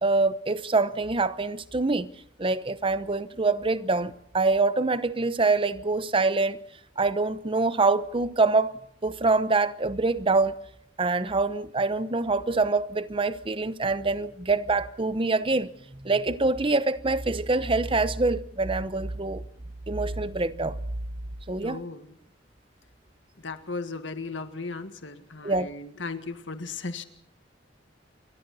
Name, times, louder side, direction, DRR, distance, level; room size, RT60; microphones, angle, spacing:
voice 1, 0.0-2.1 2.4-6.6 7.0-8.8 9.0-10.5 11.0-19.4 19.9-20.8 21.5-21.8 25.4-25.7, right 3 dB, 30° right, 0.9 m, -25 dB
voice 2, 21.6-22.2 23.4-27.0, left 3 dB, 85° left, 1.8 m, -36 dB
27.5 x 22.5 x 4.2 m
head